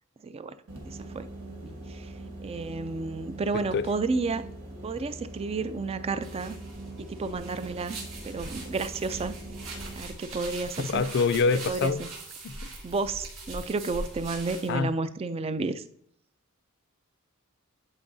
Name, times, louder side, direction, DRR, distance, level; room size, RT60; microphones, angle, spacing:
voice 1, 0.2-0.6 0.8-1.3 1.6-2.1 2.4-4.4 4.8-6.6 7.0-8.0 8.2-9.4 10.0-11.0 11.7-12.1 12.8-15.8, right 3 dB, 25° right, 0.3 m, -31 dB
sound 1, 0.7-9.9, right 2 dB, 90° right, 1.5 m, -42 dB
voice 2, 3.5-3.9 10.8-12.0 12.4-12.7 14.7-14.9, left 4 dB, 55° left, 0.4 m, -26 dB
sound 2, 6.2-14.7, right 2 dB, 65° right, 2.2 m, -41 dB
10.5 x 4.7 x 2.6 m
head